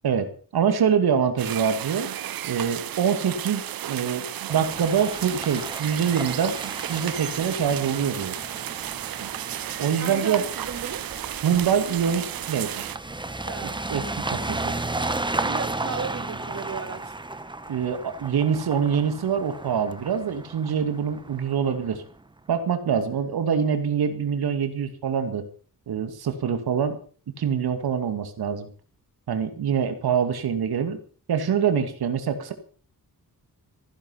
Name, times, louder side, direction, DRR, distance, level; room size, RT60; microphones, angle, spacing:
voice 1, 0.0-2.1 2.4-6.6 6.9-8.4 9.8-10.4 11.4-12.9 13.6-14.7 17.7-22.0 22.5-25.4 25.9-27.0 27.4-28.7 29.3-31.0 31.3-32.5, right 7 dB, 85° right, 2.3 m, -25 dB
sound 1, 1.4-13.0, right 12 dB, 70° right, 0.7 m, -33 dB
sound 2, 4.5-22.1, right 2 dB, 10° right, 1.0 m, -34 dB
voice 2, 10.0-11.1 13.4-13.9 15.4-17.2 23.0-23.2, right 6 dB, 45° right, 1.5 m, -35 dB
15.5 x 10.5 x 5.7 m
wide cardioid pair, 105°, 37 cm